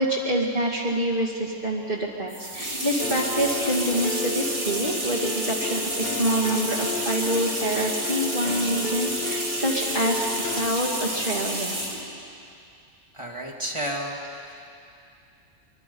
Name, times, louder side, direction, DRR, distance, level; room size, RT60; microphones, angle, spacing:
voice 1, 0.0-11.8, right 1 dB, 45° right, -5 dB, 2.5 m, -26 dB
sound 1, 2.3-12.1, right 1 dB, 65° right, 3.3 m, -30 dB
sound 2, 3.0-10.7, left 4 dB, 45° left, 0.9 m, -33 dB
voice 2, 13.1-14.7, equal, 25° right, -1 dB, 2.2 m, -32 dB
25.0 x 23.5 x 5.5 m, 2.5 s
omnidirectional pair, 1.3 m